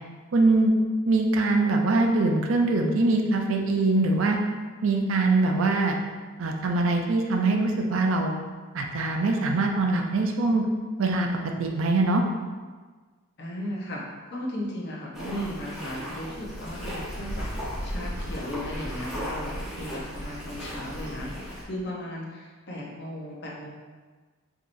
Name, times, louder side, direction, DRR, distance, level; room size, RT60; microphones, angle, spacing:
voice 1, 0.3-0.7 1.1-4.4 4.8-6.0 6.4-8.4 8.7-10.6 11.0-11.3 11.6-12.2, right 3 dB, 65° right, 2 dB, 0.5 m, -23 dB
voice 2, 13.4-14.0 14.3-23.7, left 1 dB, 50° left, -4 dB, 0.8 m, -36 dB
sound 1, 15.1-21.6, equal, ahead, 0.9 m, -35 dB
4.7 x 2.9 x 2.6 m, 1.4 s
head